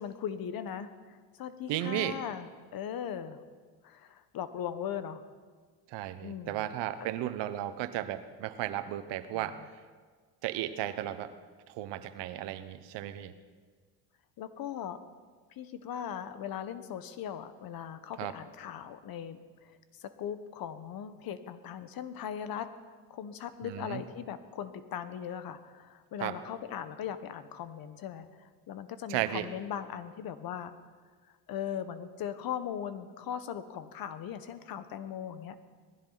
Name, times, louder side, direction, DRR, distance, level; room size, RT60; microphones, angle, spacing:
voice 1, 0.0-3.4 3.8-5.2 6.2-6.7 7.0-7.1 9.3-9.5 14.4-15.0 15.5-22.7 23.1-30.7 31.5-35.6, left 9 dB, 55° left, 11 dB, 1.2 m, -39 dB
voice 2, 1.7-2.1 5.9-9.6 10.4-11.3 11.7-13.3 18.2-18.3 23.6-24.0 26.2-26.3 29.1-29.5, right 13 dB, 75° right, 11 dB, 1.2 m, -34 dB
19.5 x 15.0 x 4.1 m, 1.5 s
supercardioid pair, 100°, 43 cm